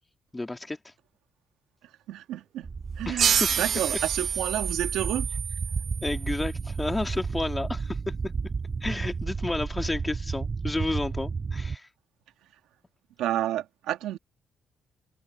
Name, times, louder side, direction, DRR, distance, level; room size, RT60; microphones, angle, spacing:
voice 1, 0.3-0.8 3.0-3.5 6.0-8.0 8.8-11.9, left 2 dB, 15° left, 2.5 m, -31 dB
voice 2, 2.1-2.7 3.0-5.3 13.2-14.2, right 13 dB, 90° right, 2.1 m, -30 dB
sound 1, 2.6-11.8, right 5 dB, 35° right, 0.3 m, -33 dB
sound 2, 3.2-6.4, right 7 dB, 60° right, 1.6 m, -28 dB
cardioid pair, 90°, 0 cm